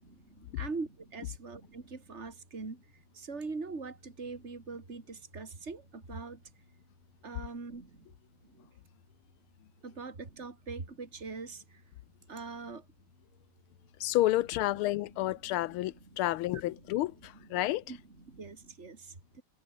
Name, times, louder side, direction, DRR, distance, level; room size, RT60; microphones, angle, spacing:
voice 1, 0.0-2.8 3.1-6.4 7.2-8.1 8.4-8.7 9.8-11.8 12.3-12.8 16.5-16.8 17.3-17.6 17.9-19.4, right 4 dB, 30° right, 3.3 m, -42 dB
voice 2, 14.0-17.8, left 16 dB, 80° left, 1.5 m, -30 dB
omnidirectional pair, 2.4 m